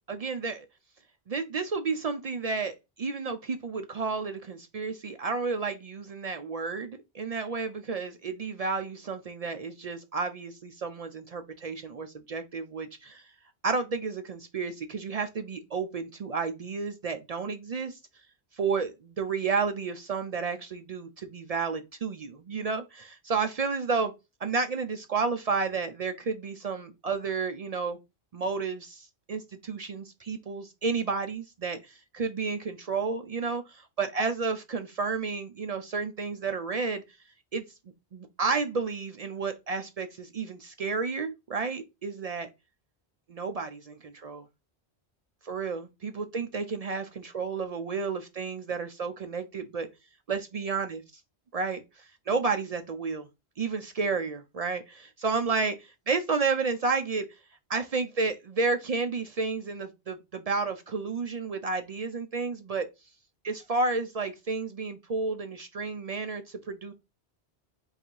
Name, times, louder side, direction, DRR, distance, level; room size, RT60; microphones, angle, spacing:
voice 1, 0.1-0.7 1.3-13.3 13.6-18.0 18.5-24.1 24.4-28.0 28.3-37.0 37.5-37.6 38.1-42.5 43.3-44.5 45.4-49.9 50.3-51.0 51.5-53.3 53.6-57.3 57.7-62.9 63.4-66.9, right 4 dB, 60° right, 0.4 m, -31 dB
3.9 x 2.6 x 4.5 m
omnidirectional pair, 1.1 m